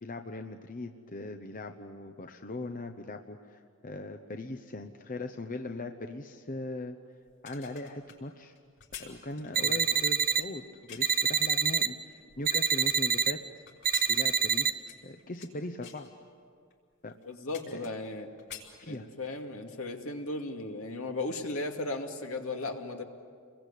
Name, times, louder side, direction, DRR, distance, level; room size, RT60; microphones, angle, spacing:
voice 1, 0.0-7.0 7.4-8.5 9.0-13.4 14.1-16.1 17.0-17.2 17.7-17.8 18.8-19.1, left 2 dB, 40° left, 6 dB, 1.0 m, -40 dB
Dismantling scaffolding, 7.3-11.3 11.8-13.2 13.7-15.5 15.8-16.1 16.7-16.8 17.1-18.1 18.4-19.4 19.7-19.9, left 8 dB, 60° left, 5.5 m, -49 dB
voice 2, 9.6-10.0 17.3-18.3 18.8-23.0, left 2 dB, 75° left, 3 dB, 2.4 m, -36 dB
sound 1, 9.6-10.4 11.0-11.9 12.5-13.3 13.8-14.7, right 7 dB, 40° right, 0.8 m, -26 dB
29.5 x 22.0 x 8.5 m, 2.1 s
head